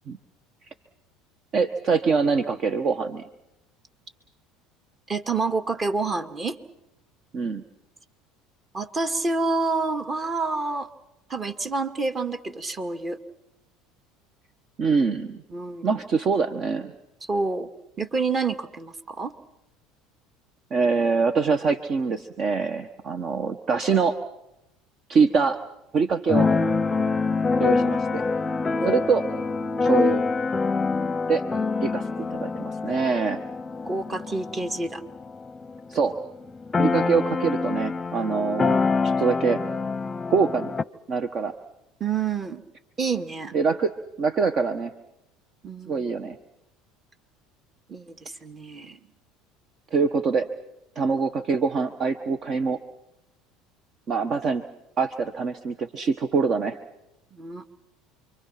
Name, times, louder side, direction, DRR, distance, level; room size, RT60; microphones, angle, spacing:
voice 1, 1.5-3.3 7.3-7.6 14.8-15.4 15.8-16.9 20.7-24.2 25.1-25.6 25.9-26.5 27.6-28.2 28.8-29.2 29.8-30.2 31.3-31.4 31.8-33.4 35.9-36.1 36.7-38.8 39.0-39.6 40.3-40.7 41.1-41.5 43.5-43.9 44.2-44.9 45.9-46.4 49.9-50.5 50.9-52.8 54.1-54.6 55.0-56.8, right 5 dB, 45° right, 10 dB, 1.3 m, -24 dB
voice 2, 5.1-6.6 8.7-10.9 11.3-13.2 15.5-15.8 17.2-17.7 18.0-19.3 27.8-27.9 28.8-29.0 33.8-35.0 36.9-37.3 42.0-42.6 43.0-43.5 45.6-46.1 47.9-49.0 57.3-57.6, right 3 dB, 30° right, 8 dB, 2.3 m, -28 dB
Keyboard (musical), 26.3-35.8 36.1-36.2 36.4-40.8, left 4 dB, 20° left, 0.8 m, -25 dB
28.5 x 24.0 x 6.0 m, 0.88 s
hypercardioid pair, 80°, 0 cm